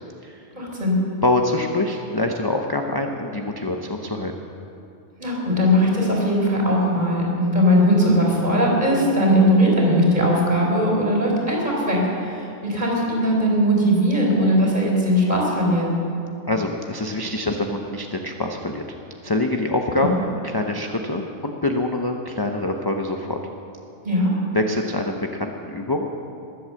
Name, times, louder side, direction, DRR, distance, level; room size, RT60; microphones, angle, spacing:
voice 1, 0.5-0.9 5.2-15.9 19.9-20.1 24.0-24.3, equal, 30° right, -2 dB, 4.0 m, -19 dB
voice 2, 1.2-4.3 16.5-18.8 19.2-20.2 20.4-23.4 24.5-26.2, left 2 dB, 25° left, 3 dB, 0.6 m, -25 dB
21.5 x 8.0 x 7.6 m, 2.6 s
omnidirectional pair, 1.4 m